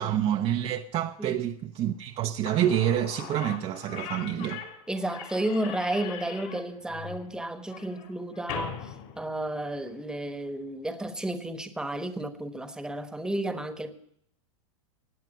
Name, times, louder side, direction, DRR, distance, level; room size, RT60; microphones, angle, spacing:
voice 1, 0.0-4.6, right 11 dB, 35° right, 0.7 m, -27 dB
Slam / Squeak, 2.2-2.3 2.5-9.9, left 9 dB, 55° left, 3.7 m, -41 dB
voice 2, 4.9-14.0, right 1 dB, 5° right, 1.2 m, -32 dB
17.0 x 9.0 x 5.4 m
hypercardioid pair, 115°, 17 cm